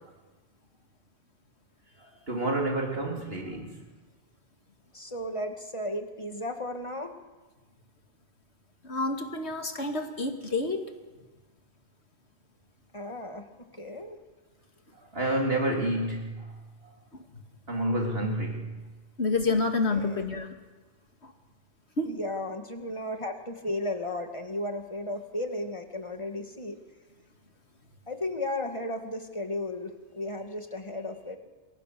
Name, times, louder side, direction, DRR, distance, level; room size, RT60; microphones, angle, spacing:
voice 1, 2.3-3.7 15.1-16.5 17.7-18.7, right 1 dB, 55° right, 0 dB, 3.9 m, -29 dB
voice 2, 4.9-7.1 12.9-13.5 13.8-14.2 19.9-20.3 22.0-26.8 28.1-31.4, left 1 dB, 25° left, 5 dB, 2.2 m, -34 dB
voice 3, 8.8-10.8 17.1-17.2 19.2-20.5 22.0-22.1, left 3 dB, 65° left, 4 dB, 2.6 m, -28 dB
28.5 x 22.5 x 6.9 m, 1.2 s
omnidirectional pair, 1.2 m